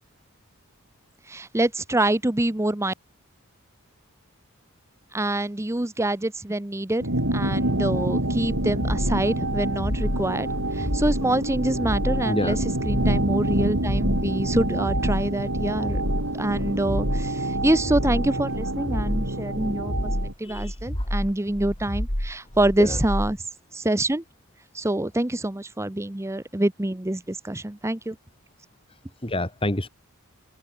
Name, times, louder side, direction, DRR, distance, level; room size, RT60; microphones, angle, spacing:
voice 1, 1.3-2.9 5.1-7.0 7.3-10.5 10.8-12.6 12.9-16.0 16.4-17.3 17.6-20.1 20.4-23.4 23.7-24.2 24.7-28.1, right 1 dB, 15° right, 0.8 m, -25 dB
sound 1, 7.0-20.3, right 1 dB, 70° right, 5.3 m, -27 dB
sound 2, 8.4-23.4, equal, 45° left, 5.9 m, -29 dB
voice 2, 12.2-12.6 20.4-21.1 22.8-23.0 28.9-29.9, left 1 dB, 25° left, 2.9 m, -29 dB
head